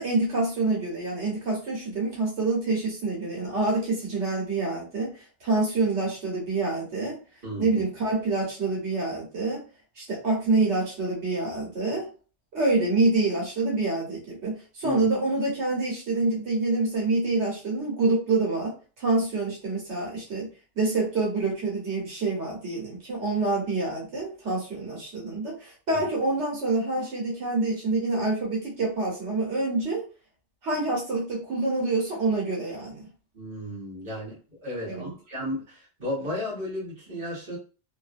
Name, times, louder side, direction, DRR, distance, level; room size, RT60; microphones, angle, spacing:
voice 1, 0.0-7.2 7.6-9.6 10.0-12.1 12.5-20.5 20.8-30.0 30.6-33.0 34.8-35.1, right 3 dB, 90° right, -4 dB, 1.5 m, -27 dB
voice 2, 7.4-7.8 14.8-15.1 25.9-26.0 33.3-34.4 34.6-37.6, left 1 dB, 50° right, -4 dB, 1.8 m, -33 dB
3.0 x 2.5 x 2.5 m, 0.35 s
omnidirectional pair, 1.1 m